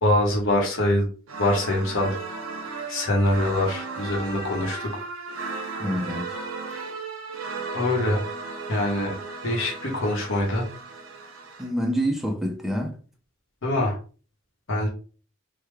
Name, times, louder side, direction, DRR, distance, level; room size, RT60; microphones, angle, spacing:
voice 1, 0.0-1.1 1.4-2.2 2.9-5.1 7.7-8.3 8.7-9.1 9.4-10.7 13.6-14.0 14.7-14.9, left 1 dB, 65° left, 1.0 m, -24 dB
sound 1, 1.3-11.7, right 4 dB, 80° right, 0.8 m, -35 dB
voice 2, 5.8-6.4 11.6-12.9, equal, ahead, 0.5 m, -27 dB
3.3 x 2.2 x 3.3 m
head